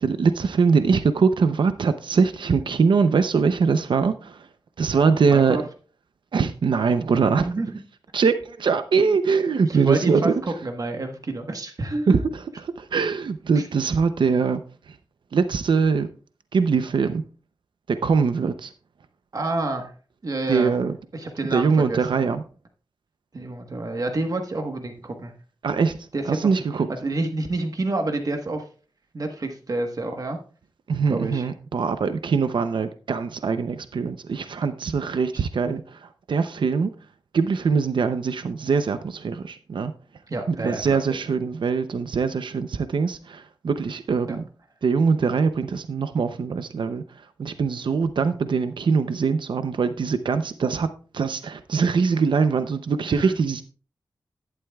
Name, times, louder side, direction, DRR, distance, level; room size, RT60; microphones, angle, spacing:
voice 1, 0.0-4.5 4.8-5.6 6.3-7.5 8.1-10.3 12.1-12.4 12.8-14.6 14.9-15.0 15.3-16.1 16.5-17.2 17.9-18.7 20.5-21.0 21.5-22.4 25.6-26.9 30.9-36.9 37.3-39.9 40.5-44.4 44.8-50.9 51.1-53.6, right 5 dB, 80° right, 0.6 m, -22 dB
voice 2, 5.3-5.6 7.4-7.7 9.6-12.2 13.5-13.6 19.3-19.9 20.2-20.7 21.1-22.0 23.3-25.3 26.1-26.5 27.0-28.6 29.1-30.4 31.1-31.4 35.3-35.4 40.3-41.0 44.3-44.4 53.1-53.4, right 2 dB, 50° right, 1.2 m, -28 dB
12.0 x 11.0 x 2.3 m
wide cardioid pair, 125°, 8 cm